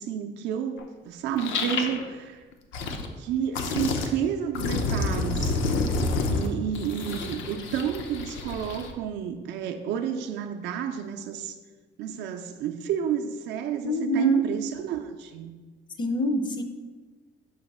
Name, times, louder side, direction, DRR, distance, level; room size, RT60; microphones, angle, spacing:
voice 1, 0.0-2.4 3.2-5.6 6.3-11.6 12.0-15.5, right 8 dB, 65° right, 5 dB, 0.4 m, -31 dB
sound 1, 0.8-0.9 1.4-2.1 2.5-3.1 3.5-4.1 4.5-8.9, left 3 dB, 85° left, 0.7 m, -29 dB
voice 2, 13.8-14.4 16.0-16.6, right 1 dB, 25° left, 7 dB, 0.4 m, -24 dB
6.3 x 2.9 x 5.3 m, 1.3 s
cardioid pair, 165°, 19 cm